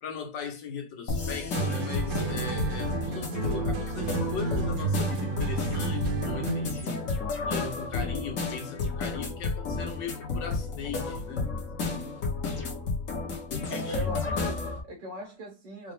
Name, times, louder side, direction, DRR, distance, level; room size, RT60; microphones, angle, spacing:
voice 1, 0.0-7.0 7.5-11.5 13.5-14.1, left 6 dB, 85° left, 1.6 m, -39 dB
sound 1, 1.1-14.8, left 4 dB, 55° left, 1.2 m, -32 dB
sound 2, 1.5-6.9, right 4 dB, 60° right, 1.2 m, -31 dB
voice 2, 11.8-12.3 13.7-15.9, right 1 dB, 85° right, 2.3 m, -40 dB
4.8 x 2.0 x 3.2 m
omnidirectional pair, 1.9 m